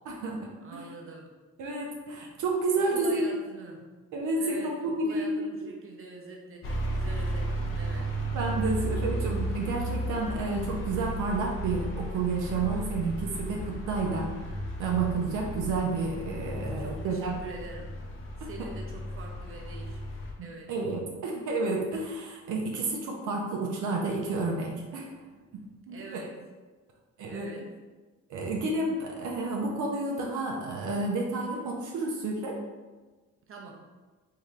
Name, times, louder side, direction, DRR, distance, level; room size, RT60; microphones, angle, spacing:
voice 1, 0.1-0.8 1.6-3.3 4.1-5.7 8.3-14.3 14.8-17.3 18.4-18.5 20.4-25.1 25.5-26.2 27.2-27.5 28.3-32.6, right 3 dB, 80° right, -1 dB, 0.7 m, -30 dB
voice 2, 0.6-1.3 2.7-3.9 4.4-8.1 16.6-17.9 18.4-20.1 20.4-20.7 25.9-26.4 27.3-27.6 33.5-33.8, right 3 dB, 45° right, 0 dB, 0.8 m, -45 dB
sound 1, 6.6-20.3, right 1 dB, 45° left, 0.8 m, -34 dB
3.2 x 2.8 x 3.6 m, 1.3 s
cardioid pair, 90°, 30 cm